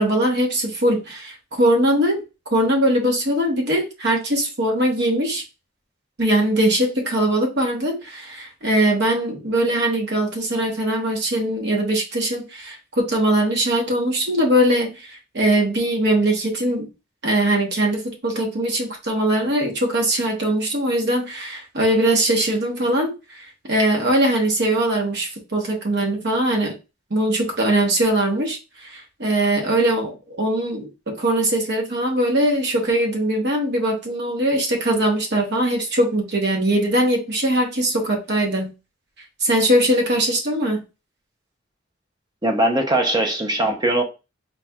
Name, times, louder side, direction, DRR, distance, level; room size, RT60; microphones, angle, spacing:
voice 1, 0.0-2.2 2.5-5.4 6.2-16.9 17.2-26.7 27.1-38.7 39.4-40.8, right 1 dB, 55° right, 1.0 m, -21 dB
voice 2, 42.4-44.0, right 1 dB, 20° right, 0.6 m, -20 dB
4.1 x 3.1 x 2.3 m
head